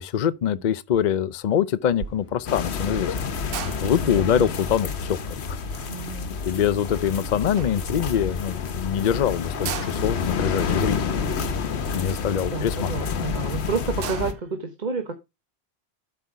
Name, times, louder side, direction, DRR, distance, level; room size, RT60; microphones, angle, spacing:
voice 1, 0.0-3.1 3.8-5.6 6.5-11.0 11.9-12.9, left 9 dB, 50° left, 0.6 m, -24 dB
sound 1, 0.9-1.2 1.5-7.1 7.6-8.3 8.8-8.9 9.0-9.1 9.4-13.0 13.5-13.6 13.8-14.6, right 9 dB, 65° right, 0.8 m, -39 dB
sound 2, 1.9-7.1, left 1 dB, 30° left, 2.0 m, -48 dB
sound 3, 2.5-14.3, left 5 dB, 80° left, 1.2 m, -29 dB
voice 2, 4.1-4.5 5.9-6.3 12.5-15.1, right 4 dB, 45° right, 1.2 m, -30 dB
8.3 x 5.6 x 4.8 m
omnidirectional pair, 1.1 m